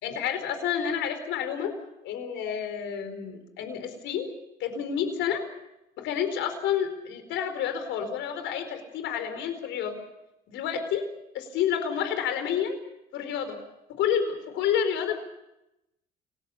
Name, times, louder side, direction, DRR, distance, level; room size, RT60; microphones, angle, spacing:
voice 1, 0.0-1.7 2.0-4.3 4.6-5.4 6.0-10.0 10.5-11.0 11.3-12.8 13.1-13.6 13.9-15.2, left 8 dB, 75° left, 8 dB, 4.5 m, -29 dB
29.0 x 19.0 x 6.8 m, 0.87 s
supercardioid pair, 90°, 19 cm